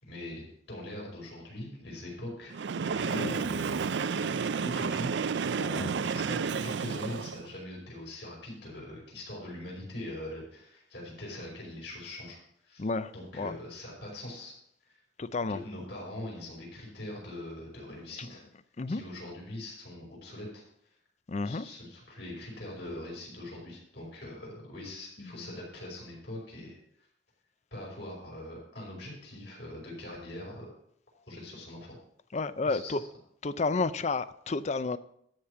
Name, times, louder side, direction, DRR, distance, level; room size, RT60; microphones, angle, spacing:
voice 1, 0.0-2.6 2.9-3.8 4.2-5.1 5.6-12.4 12.6-12.9 13.1-14.5 15.4-18.4 18.9-20.6 21.4-26.8 27.7-30.7 31.3-32.0 32.7-33.1, left 1 dB, 65° left, -4 dB, 5.5 m, -42 dB
Train, 2.5-7.5, right 5 dB, 65° right, 0.4 m, -31 dB
voice 2, 3.1-3.4 5.8-5.9 12.8-13.5 15.2-15.6 18.8-19.0 21.3-21.7 25.2-25.5 32.3-33.0 33.4-35.0, left 3 dB, 40° left, 14 dB, 0.5 m, -31 dB
13.0 x 5.0 x 6.9 m, 0.70 s
head